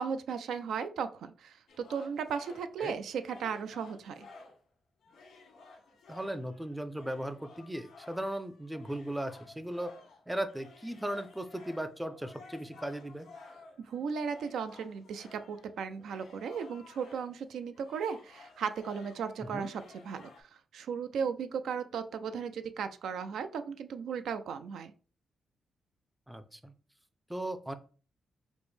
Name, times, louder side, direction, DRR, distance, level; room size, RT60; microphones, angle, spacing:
voice 1, 0.0-4.3 13.9-24.9, right 6 dB, 90° right, 10 dB, 0.3 m, -36 dB
sound 1, 1.7-4.7 5.0-17.4 17.7-20.4, left 3 dB, 90° left, 1.2 m, -55 dB
voice 2, 6.1-10.0 10.3-13.3 19.5-19.7 26.3-26.7 27.3-27.7, right 1 dB, 5° right, 10 dB, 0.4 m, -37 dB
5.0 x 2.0 x 3.1 m, 0.38 s
cardioid pair, 110°, 0 cm